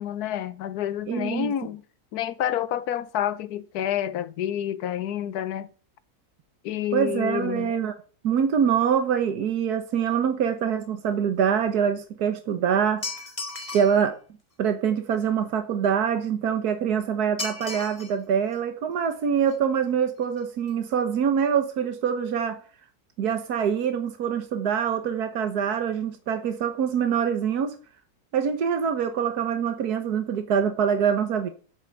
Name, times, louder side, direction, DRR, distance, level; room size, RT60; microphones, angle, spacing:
voice 1, 0.0-1.8 2.1-5.7 6.6-7.7, left 10 dB, 80° left, 1.3 m, -29 dB
voice 2, 1.1-1.5 6.9-7.9 8.2-13.0 13.7-14.2 14.6-22.6 23.2-27.7 28.3-31.5, right 7 dB, 85° right, 1.6 m, -24 dB
sound 1, 13.0-14.0 17.4-18.1 18.5-18.6 19.5-19.6 19.9-20.0 20.2-20.4 20.7-20.8, left 3 dB, 20° left, 2.9 m, -35 dB
8.5 x 8.1 x 7.7 m
omnidirectional pair, 1.6 m